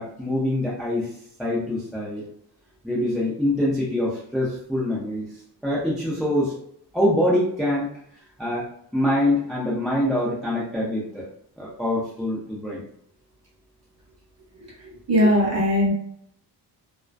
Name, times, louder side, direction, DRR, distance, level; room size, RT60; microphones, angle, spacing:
voice 1, 0.0-2.2 2.8-5.3 5.6-6.6 6.9-7.9 8.4-8.7 8.9-11.3 11.6-12.8, left 1 dB, ahead, -6 dB, 0.3 m, -24 dB
voice 2, 15.1-15.9, equal, 35° right, -3 dB, 0.8 m, -19 dB
2.3 x 2.2 x 2.4 m, 0.70 s
wide cardioid pair, 170°, 42 cm